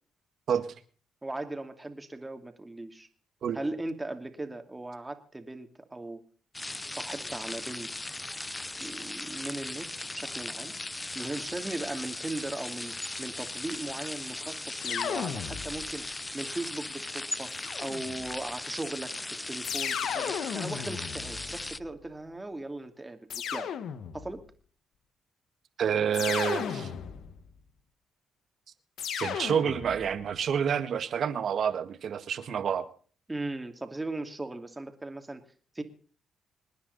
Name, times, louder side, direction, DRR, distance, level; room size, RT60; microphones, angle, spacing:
voice 1, 1.2-3.1 3.5-6.2 6.9-7.9 8.8-9.9 10.1-10.8 11.1-17.5 17.8-23.7 24.1-24.4 33.3-35.4 35.7-35.8, right 2 dB, 15° right, 6 dB, 2.6 m, -38 dB
sound 1, 6.5-21.8, left 2 dB, 15° left, 0.6 m, -38 dB
sound 2, 14.8-16.0 17.5-18.4 19.6-22.0 23.3-24.4 26.1-27.5 29.0-30.2, left 8 dB, 70° left, 1.5 m, -35 dB
voice 2, 25.8-26.9 29.2-32.9, right 8 dB, 60° right, 11 dB, 1.8 m, -28 dB
26.5 x 10.0 x 4.1 m, 0.43 s
cardioid pair, 90°, 0 cm